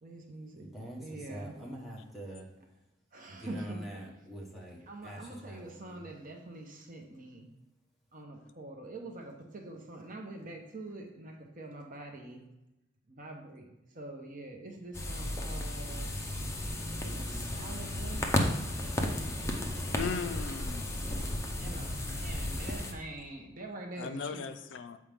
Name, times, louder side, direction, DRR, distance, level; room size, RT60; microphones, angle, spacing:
voice 1, 0.0-0.7 1.0-1.5 3.1-4.0 4.9-7.5 8.1-12.4 13.1-13.7 13.9-16.1 17.0-18.3 18.6-19.9 21.1-21.3 21.6-24.5, right 2 dB, 45° right, 2 dB, 0.9 m, -45 dB
voice 2, 0.6-1.0 1.3-2.4 3.2-6.1, equal, ahead, -4 dB, 1.2 m, -44 dB
sound 1, 14.9-22.9, left 1 dB, 15° left, 0.6 m, -34 dB
voice 3, 19.9-20.8 22.4-22.5 24.0-25.0, left 5 dB, 70° left, 9 dB, 0.4 m, -37 dB
7.3 x 4.7 x 3.5 m, 0.95 s
head